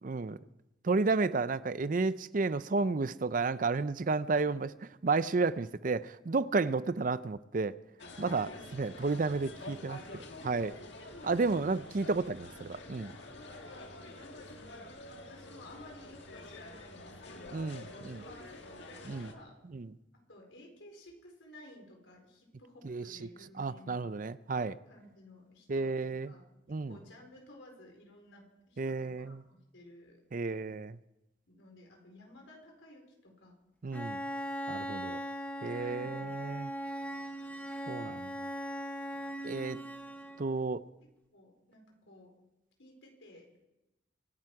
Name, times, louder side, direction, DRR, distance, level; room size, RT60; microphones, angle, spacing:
voice 1, 0.0-0.4 0.8-4.7 5.0-7.7 8.2-10.8 11.2-13.1 17.5-18.2 19.1-19.3 19.7-19.9 22.8-23.3 23.6-24.8 25.7-26.3 26.7-27.0 28.8-29.4 30.3-31.0 33.8-34.2 34.7-35.2 35.6-36.7 37.9-38.3 39.4-39.8 40.4-40.8, right 3 dB, 45° right, 0.5 m, -32 dB
sound 1, 8.0-19.3, left 2 dB, 65° left, 1.8 m, -48 dB
voice 2, 8.2-8.9 13.9-14.9 15.2-19.6 20.1-24.1 24.9-26.5 26.9-30.2 31.5-33.5 35.8-36.4 39.7-39.9 41.3-42.3 42.8-43.5, left 1 dB, 80° left, 4.5 m, -55 dB
Bowed string instrument, 33.9-40.6, equal, 10° left, 1.0 m, -39 dB
24.5 x 12.0 x 4.8 m
head